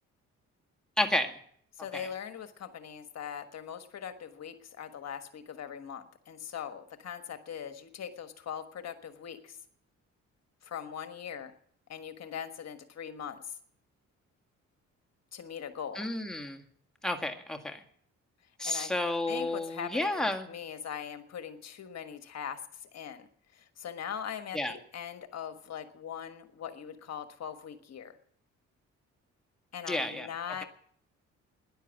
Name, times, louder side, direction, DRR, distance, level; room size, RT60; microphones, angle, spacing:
voice 1, 1.0-1.3 1.9-2.1 16.0-16.6 17.0-17.8 18.6-20.5 24.5-24.7 29.9-30.3, left 1 dB, ahead, 3 dB, 1.9 m, -31 dB
voice 2, 1.8-9.6 10.6-11.5 11.9-13.5 15.3-16.1 18.6-18.9 19.3-28.2 29.7-30.6, left 8 dB, 60° left, 8 dB, 1.4 m, -41 dB
13.5 x 10.5 x 8.2 m, 0.63 s
cardioid pair, 90°, 30 cm